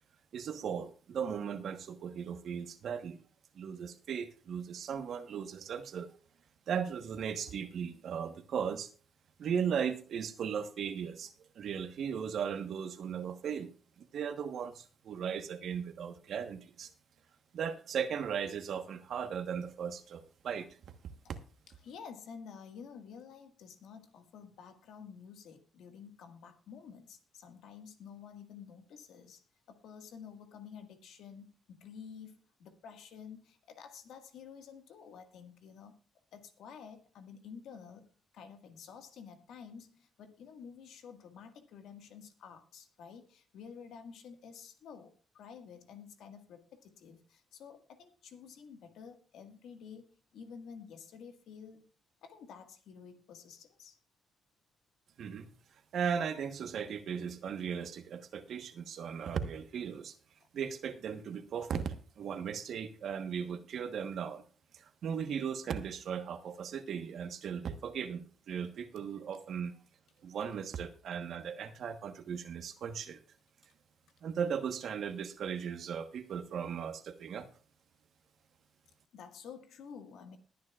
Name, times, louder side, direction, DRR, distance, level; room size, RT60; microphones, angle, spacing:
voice 1, 0.3-3.2 3.5-6.1 6.7-8.9 9.4-13.7 14.0-16.9 17.5-20.7 21.3-21.4 55.2-55.5 55.9-60.1 60.5-64.4 64.7-69.8 70.2-73.2 74.2-77.5, right 7 dB, 65° right, 7 dB, 1.2 m, -37 dB
voice 2, 21.8-36.0 36.3-38.1 38.3-51.9 52.2-54.0 60.4-60.5 79.1-80.4, left 6 dB, 80° left, 6 dB, 1.7 m, -51 dB
21.0 x 9.4 x 2.4 m, 0.39 s
cardioid pair, 90°, 0 cm